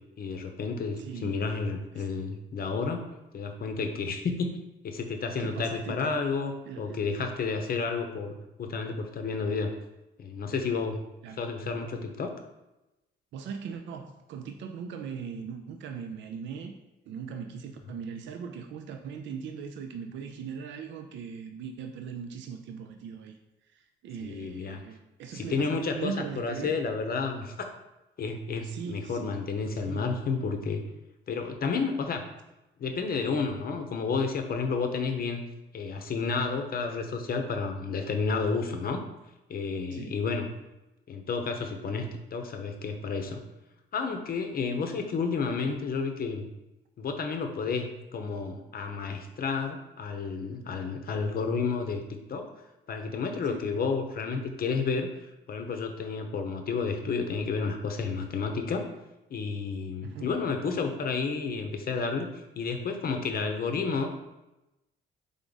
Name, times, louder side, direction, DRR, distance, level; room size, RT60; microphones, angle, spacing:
voice 1, 0.2-3.0 3.3-4.6 4.8-9.7 10.2-11.0 11.4-12.3 24.2-24.8 25.3-27.7 28.2-30.8 31.3-32.2 32.8-35.4 35.7-39.0 39.5-40.5 41.1-43.4 43.9-46.5 47.0-47.9 48.1-52.0 52.3-52.5 52.9-55.1 55.5-58.8 59.3-62.3 62.6-64.2, left 4 dB, 50° left, 5 dB, 0.7 m, -31 dB
voice 2, 1.0-1.5 1.9-2.1 5.4-6.1 6.7-7.0 11.2-11.4 13.3-16.7 17.1-23.4 23.7-26.8 28.6-29.3 29.7-30.1 39.9-40.2 53.4-53.8 60.0-60.3, right 6 dB, 65° right, 6 dB, 0.4 m, -39 dB
3.6 x 3.5 x 3.9 m, 0.97 s
cardioid pair, 90°, 20 cm